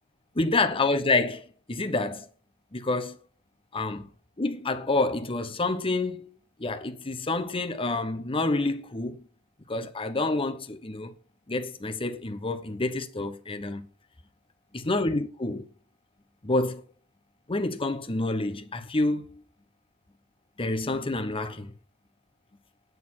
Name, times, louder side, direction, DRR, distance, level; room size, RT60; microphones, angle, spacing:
voice 1, 0.3-2.3 2.7-3.2 3.7-4.1 4.4-9.2 9.7-11.1 11.5-13.9 14.7-15.7 16.4-16.8 17.5-19.4 20.6-21.7, left 2 dB, 25° left, 1.0 m, -28 dB
9.4 x 4.3 x 7.2 m
head